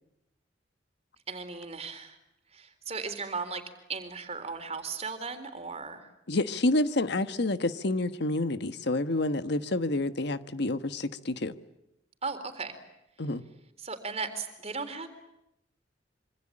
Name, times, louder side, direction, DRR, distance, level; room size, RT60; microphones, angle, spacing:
voice 1, 1.3-2.2 2.5-3.6 3.9-6.1 12.2-12.8 13.8-15.1, right 4 dB, 35° right, 8 dB, 3.9 m, -36 dB
voice 2, 6.3-11.5 13.2-13.4, left 2 dB, 60° left, 11 dB, 1.3 m, -28 dB
26.5 x 25.5 x 8.7 m, 0.82 s
head